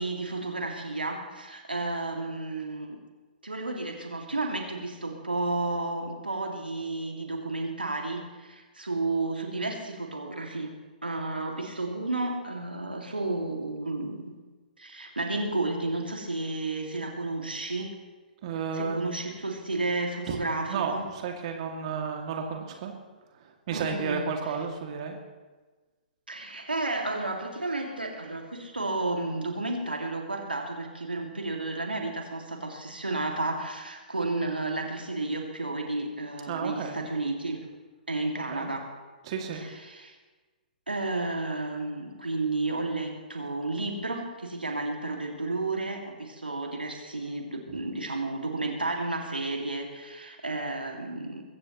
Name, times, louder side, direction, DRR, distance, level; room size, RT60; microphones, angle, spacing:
voice 1, 0.0-3.0 3.4-10.7 11.0-14.3 14.8-17.9 18.7-21.1 23.7-24.3 26.3-37.7 38.1-38.9 39.5-40.2 40.9-51.4, right 2 dB, 85° right, 2 dB, 2.2 m, -32 dB
voice 2, 18.4-19.2 20.3-20.4 20.7-22.9 23.3-25.2 36.5-37.0 38.3-38.7 39.2-39.7 47.7-47.8, right 6 dB, 45° right, 3 dB, 2.2 m, -33 dB
22.5 x 15.5 x 3.0 m, 1.3 s
figure-of-eight pair, 120°, 5 cm